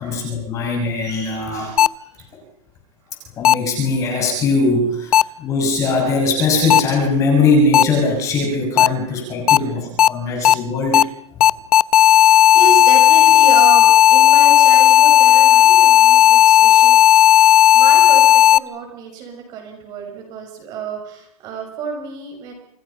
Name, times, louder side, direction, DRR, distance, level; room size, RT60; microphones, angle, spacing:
voice 1, 0.0-1.8 3.4-11.1, left 3 dB, 15° left, 2 dB, 6.4 m, -20 dB
sound 1, 1.8-1.9 3.4-3.5 5.1-5.2 6.7-6.8 7.7-7.8 8.8-8.9 9.5-9.6 10.0-10.1 10.4-10.5 10.9-11.0 11.4-18.6, left 11 dB, 70° left, 0.9 m, -11 dB
voice 2, 12.0-22.5, right 5 dB, 20° right, 3 dB, 6.8 m, -30 dB
29.5 x 28.5 x 5.8 m, 0.72 s
hypercardioid pair, 175°, 19 cm